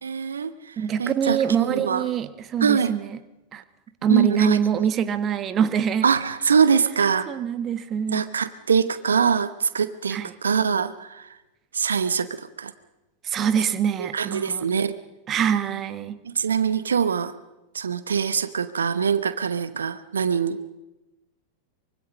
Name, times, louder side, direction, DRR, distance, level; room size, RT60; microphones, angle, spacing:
voice 1, 0.0-2.1 2.6-3.0 4.1-4.9 6.0-7.3 8.1-11.4 11.7-12.7 14.0-14.9 16.2-17.3 17.7-20.6, right 6 dB, 70° right, 13 dB, 0.9 m, -23 dB
voice 2, 0.8-3.2 3.5-3.6 4.0-6.1 7.3-8.2 10.1-10.3 13.2-14.6 15.3-16.2, right 8 dB, 30° right, 12 dB, 1.1 m, -24 dB
24.5 x 24.0 x 5.3 m, 1.0 s
figure-of-eight pair, 90°, 0 cm